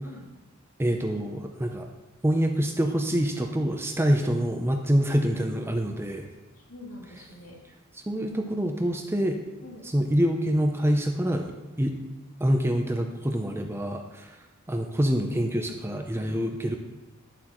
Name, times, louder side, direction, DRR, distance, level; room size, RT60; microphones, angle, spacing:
voice 1, 0.8-1.9 2.2-6.3 8.1-9.4 9.8-12.0 12.4-14.4 14.7-16.8, equal, 10° right, 3 dB, 0.5 m, -26 dB
voice 2, 6.5-7.6 9.6-9.9, left 1 dB, 85° left, -2 dB, 2.3 m, -46 dB
11.0 x 7.5 x 3.0 m, 1.1 s
head